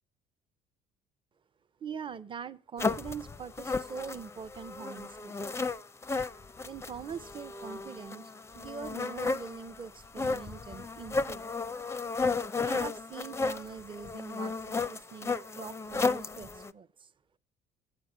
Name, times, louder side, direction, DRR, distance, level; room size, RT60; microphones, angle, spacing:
voice 1, 1.8-5.4 6.6-11.5 12.6-17.1, right 6 dB, 30° right, 0.6 m, -43 dB
sound 1, 2.8-16.7, left 4 dB, 15° left, 0.5 m, -34 dB
8.9 x 7.0 x 5.9 m
supercardioid pair, 70°, 18 cm